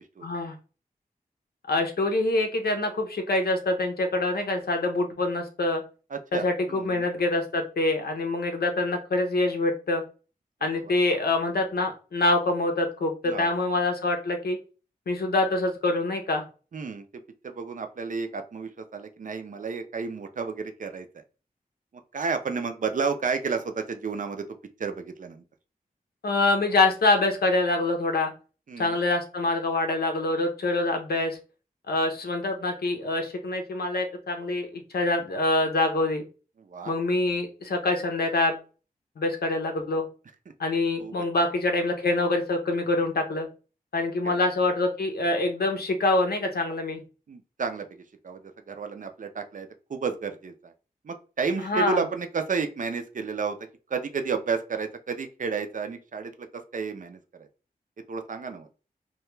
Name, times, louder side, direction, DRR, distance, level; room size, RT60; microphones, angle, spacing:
voice 1, 0.2-0.5 1.7-5.8 6.3-10.0 10.6-14.6 15.1-16.4 26.2-28.3 28.8-31.4 31.9-36.2 36.9-38.6 39.2-40.1 40.6-43.5 43.9-47.0 51.6-52.1, left 2 dB, 85° left, 4 dB, 0.6 m, -25 dB
voice 2, 6.1-7.1 10.7-10.9 13.2-13.5 16.7-17.0 17.4-21.1 22.1-24.5 24.8-25.4 28.7-28.9 36.7-36.9 41.0-41.1 44.2-44.4 47.3-47.9 48.2-48.4 48.7-50.7 51.0-53.6 53.9-56.5 56.7-57.2 58.1-58.7, right 5 dB, 55° right, 7 dB, 0.4 m, -31 dB
2.3 x 2.2 x 3.0 m, 0.35 s
wide cardioid pair, 55°, 16 cm